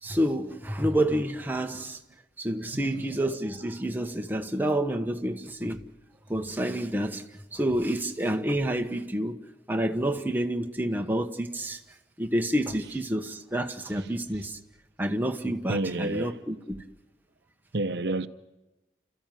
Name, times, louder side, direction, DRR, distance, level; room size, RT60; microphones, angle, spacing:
voice 1, 0.0-2.0 2.4-5.8 6.3-7.2 7.5-9.4 9.7-11.8 12.2-14.6 15.0-16.8, right 1 dB, 10° right, 1.1 m, -28 dB
voice 2, 15.7-16.4 17.7-18.3, right 2 dB, 70° right, 0.8 m, -29 dB
29.5 x 14.0 x 9.2 m
head